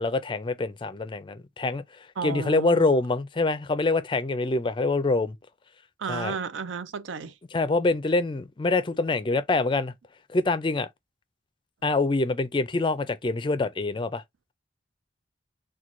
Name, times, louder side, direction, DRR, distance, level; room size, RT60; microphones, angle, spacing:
voice 1, 0.0-1.8 2.2-5.3 6.1-6.4 7.5-9.9 10.3-10.9 11.8-14.2, left 3 dB, 25° left, 0.4 m, -25 dB
voice 2, 2.2-2.9 6.0-7.4, right 5 dB, 90° right, 0.5 m, -33 dB
4.4 x 2.2 x 2.5 m
head